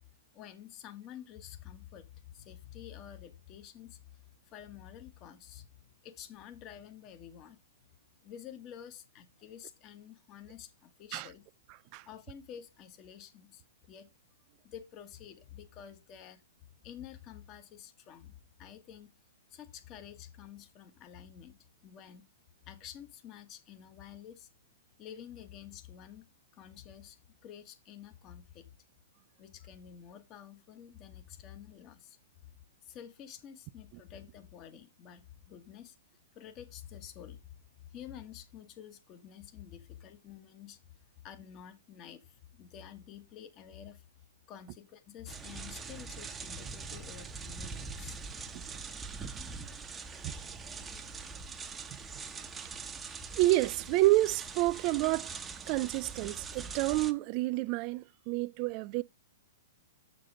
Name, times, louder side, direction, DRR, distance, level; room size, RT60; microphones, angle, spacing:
voice 1, 0.3-4.0 4.5-7.6 8.2-11.4 12.1-13.6 13.9-14.1 14.6-16.4 16.8-19.1 19.5-22.3 22.7-24.5 25.0-26.3 26.5-27.2 27.4-28.7 29.4-32.2 32.8-35.9 36.3-37.4 37.9-40.8 41.2-44.0 44.5-48.2, left 9 dB, 35° left, 1.2 m, -49 dB
sound 1, 45.3-57.1, right 4 dB, 15° right, 0.8 m, -43 dB
voice 2, 53.4-55.3 55.7-59.0, right 18 dB, 40° right, 0.3 m, -29 dB
6.8 x 6.6 x 3.7 m
hypercardioid pair, 125°, 0 cm